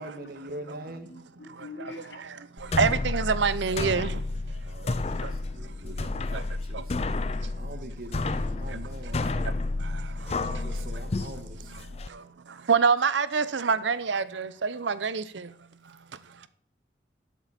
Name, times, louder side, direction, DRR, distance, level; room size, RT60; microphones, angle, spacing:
voice 1, 0.0-1.1 2.6-2.8 4.4-9.6 9.9-11.9 13.6-13.7 16.1-16.5, right 1 dB, 50° right, 1.6 m, -45 dB
voice 2, 1.0-2.2 4.5-5.4 5.7-5.9 9.9-10.0 12.1-12.3, left 3 dB, 75° left, 1.7 m, -47 dB
voice 3, 2.2-4.2 4.8-5.0 5.2-5.3 5.9-6.0 6.3-6.4 6.7-6.8 8.7-9.3 9.8-10.6 12.1-15.5 15.9-16.0, right 5 dB, 80° right, 0.7 m, -27 dB
sound 1, 2.6-12.1, left 2 dB, 35° left, 0.5 m, -31 dB
12.0 x 7.5 x 4.3 m
head